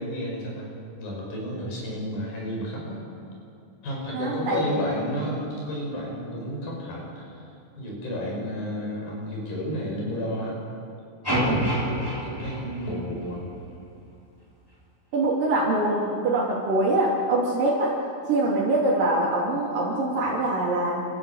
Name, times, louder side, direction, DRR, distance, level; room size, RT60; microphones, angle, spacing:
voice 1, 0.0-3.0 3.8-7.4 7.8-10.6 11.8-13.5, equal, 65° left, -2 dB, 7.2 m, -32 dB
voice 2, 4.1-5.1 11.3-11.8 15.1-18.0 18.3-21.1, right 2 dB, 60° right, -6 dB, 4.7 m, -24 dB
sound 1, 11.2-13.5, equal, 5° left, 3.0 m, -28 dB
29.5 x 15.0 x 8.1 m, 2.6 s
omnidirectional pair, 4.6 m